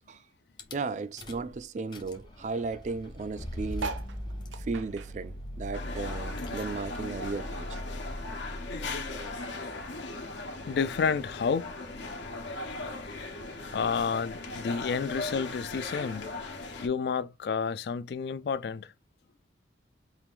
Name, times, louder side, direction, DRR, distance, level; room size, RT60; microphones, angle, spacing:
Rattle / Car / Engine starting, 0.6-0.8 1.2-1.5 1.8-9.5, left 1 dB, 25° left, 0.7 m, -40 dB
voice 1, 0.7-4.0 4.6-7.8 13.5-13.7, right 4 dB, 40° right, 0.3 m, -35 dB
sound 1, 3.7-6.5 6.8-8.4 8.9-9.0 9.1-9.2 9.4-9.8 10.6-10.7, right 4 dB, 90° right, 0.5 m, -41 dB
sound 2, 5.7-16.9, left 2 dB, 75° left, 0.9 m, -38 dB
voice 2, 10.7-11.7 13.7-16.4 16.8-18.9, left 5 dB, 60° left, 0.3 m, -30 dB
4.5 x 2.5 x 3.5 m
head